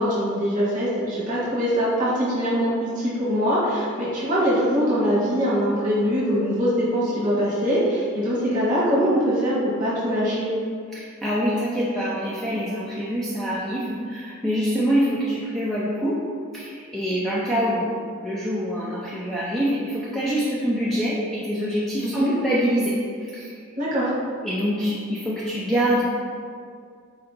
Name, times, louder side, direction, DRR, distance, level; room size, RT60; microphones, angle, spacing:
voice 1, 0.0-10.5 22.0-22.3 23.8-24.1, equal, 35° right, -9 dB, 1.1 m, -23 dB
voice 2, 10.9-16.2 16.5-17.9 18.2-23.5 24.4-26.0, equal, ahead, -8 dB, 0.4 m, -25 dB
4.3 x 2.8 x 3.8 m, 2.2 s
head